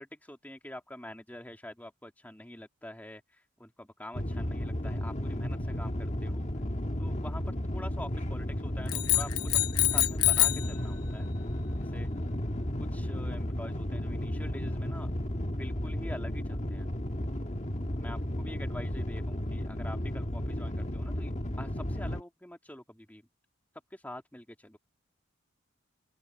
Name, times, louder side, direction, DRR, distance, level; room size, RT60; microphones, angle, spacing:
voice 1, 0.0-6.5 7.0-11.3 11.8-12.1 12.8-15.1 15.6-16.9 18.0-23.2 23.9-24.8, left 1 dB, 10° left, 2.4 m, -46 dB
sound 1, 4.1-22.2, equal, 30° left, 1.5 m, -33 dB
sound 2, 8.9-10.7, left 19 dB, 85° left, 1.0 m, -26 dB
open air
head